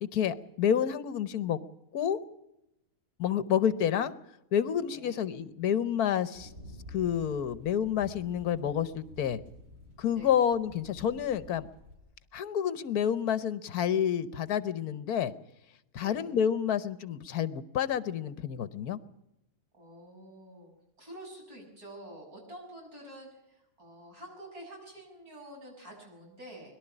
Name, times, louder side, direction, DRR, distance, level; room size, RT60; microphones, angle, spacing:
voice 1, 0.0-1.6 1.9-2.2 3.2-4.1 4.5-6.5 6.9-9.4 10.0-11.7 12.3-15.3 15.9-19.0, left 9 dB, 75° left, 15 dB, 1.4 m, -29 dB
voice 2, 4.9-5.2 10.2-10.4 16.0-16.3 19.7-20.7 21.0-26.8, right 1 dB, 70° right, 0 dB, 7.3 m, -48 dB
sound 1, 6.3-11.9, left 1 dB, 40° right, 6.2 m, -50 dB
22.0 x 12.0 x 9.9 m, 0.84 s
omnidirectional pair, 1.7 m